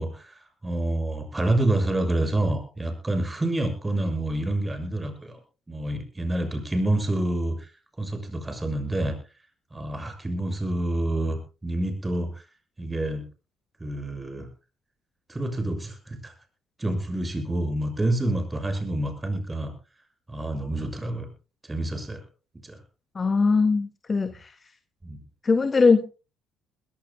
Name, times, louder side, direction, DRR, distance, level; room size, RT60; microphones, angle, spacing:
voice 1, 0.0-5.4 5.7-7.7 8.0-9.2 9.7-12.4 12.8-13.2 13.8-14.5 15.3-16.3 16.8-19.7 20.3-21.3 21.6-22.2 22.6-22.8 25.0-25.2, right 1 dB, 20° right, 8 dB, 6.7 m, -28 dB
voice 2, 23.2-24.5 25.4-26.1, left 4 dB, 30° left, 9 dB, 1.9 m, -21 dB
21.5 x 18.0 x 2.2 m, 0.34 s
hypercardioid pair, 50°, 0 cm